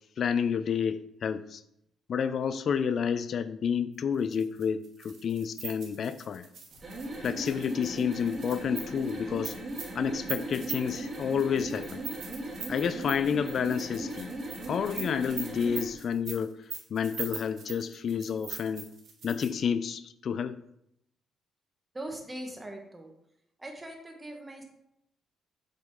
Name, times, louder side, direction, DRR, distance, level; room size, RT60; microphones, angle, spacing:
voice 1, 0.2-1.6 2.1-6.5 7.2-9.6 9.9-12.0 12.7-14.3 14.7-16.6 16.9-18.9 19.2-20.6, left 7 dB, 55° left, 0.4 m, -30 dB
sound 1, 4.2-19.6, right 6 dB, 70° right, 1.7 m, -42 dB
sound 2, 6.7-15.9, right 1 dB, 40° right, 2.5 m, -38 dB
voice 2, 21.9-23.1 23.6-24.6, right 1 dB, 15° right, 1.4 m, -41 dB
7.7 x 4.0 x 3.7 m
cardioid pair, 90°, 0 cm